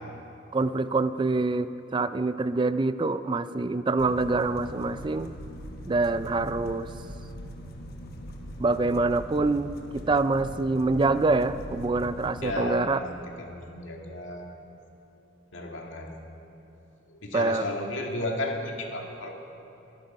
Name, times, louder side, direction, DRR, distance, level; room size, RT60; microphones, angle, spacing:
voice 1, 0.5-5.3 5.9-6.9 8.6-13.0 17.3-17.6, right 3 dB, 25° right, 12 dB, 0.3 m, -25 dB
sound 1, 4.0-12.5, equal, 50° left, 1.3 m, -41 dB
voice 2, 12.4-14.5 15.5-16.2 17.1-19.3, left 2 dB, 75° left, 1 dB, 2.0 m, -33 dB
21.5 x 11.5 x 5.4 m, 2.9 s
head